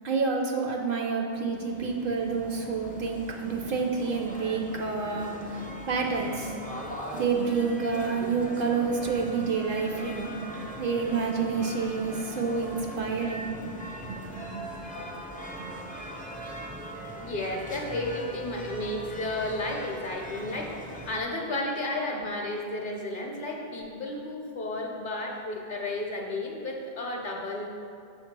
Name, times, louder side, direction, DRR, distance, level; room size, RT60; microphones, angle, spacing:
voice 1, 0.0-5.6 5.9-6.5 7.1-10.4 10.8-13.5 14.0-14.8 15.6-15.7, right 5 dB, 60° right, 2 dB, 0.7 m, -29 dB
sound 1, 1.3-21.2, equal, 10° left, 0.4 m, -40 dB
voice 2, 17.1-27.7, left 2 dB, 55° left, 0 dB, 0.8 m, -33 dB
6.8 x 2.9 x 5.8 m, 2.4 s
omnidirectional pair, 1.1 m